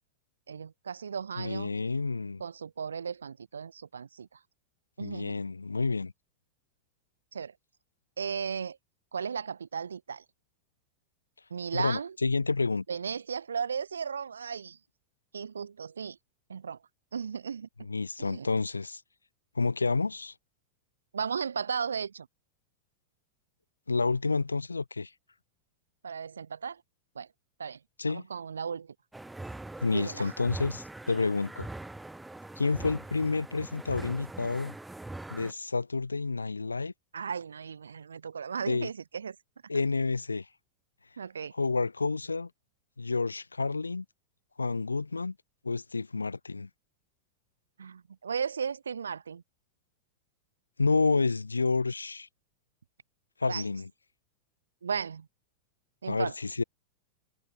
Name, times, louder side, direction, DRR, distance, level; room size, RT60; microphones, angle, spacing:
voice 1, 0.5-1.7 2.4-4.4 5.0-5.4 7.3-7.5 8.2-8.8 9.1-10.2 11.5-12.2 12.9-14.8 15.3-16.2 16.5-16.8 17.1-17.7 18.2-18.5 21.1-22.3 26.0-26.8 27.2-27.3 27.6-27.8 28.1-28.9 29.9-30.3 37.1-39.4 41.2-41.5 47.8-49.4 53.5-53.6 54.8-55.3 56.0-56.3, right 6 dB, 70° right, 5.3 m, -35 dB
voice 2, 1.4-2.4 5.0-6.1 11.7-12.8 17.8-19.0 19.6-20.3 23.9-25.1 28.0-28.2 29.8-31.7 32.6-34.8 35.3-36.9 38.7-38.9 39.7-40.5 41.5-42.5 43.0-44.1 44.6-45.3 45.6-46.7 50.8-52.3 53.4-53.9 56.1-56.6, left 3 dB, 80° left, 1.6 m, -29 dB
sound 1, 29.1-35.5, right 2 dB, 5° right, 1.7 m, -42 dB
figure-of-eight pair, 90°, 0 cm